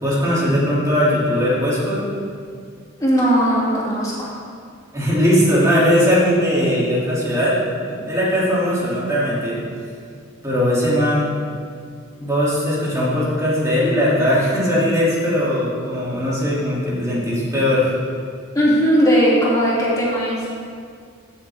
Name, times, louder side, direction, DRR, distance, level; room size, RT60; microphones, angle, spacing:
voice 1, 0.0-2.0 4.9-7.6 7.9-9.6 10.4-11.3 12.2-17.9, equal, 15° right, -7 dB, 2.6 m, -19 dB
voice 2, 3.0-4.3 18.5-20.4, equal, 15° left, -7 dB, 2.6 m, -17 dB
15.0 x 6.9 x 3.5 m, 2.2 s
head